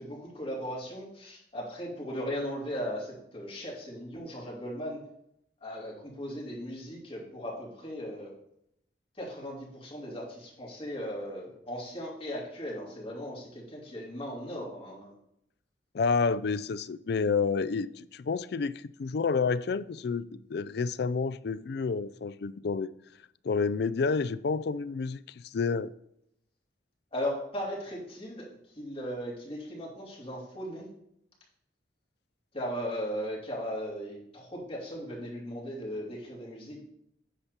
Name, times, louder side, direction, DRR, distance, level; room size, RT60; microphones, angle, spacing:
voice 1, 0.0-5.0 5.6-8.3 9.2-15.2 27.1-28.5 28.7-30.9 32.5-36.8, equal, 30° left, 2.7 m, -37 dB
voice 2, 15.9-22.9 23.4-25.9, left 4 dB, 60° left, 0.4 m, -29 dB
10.0 x 4.3 x 6.7 m
head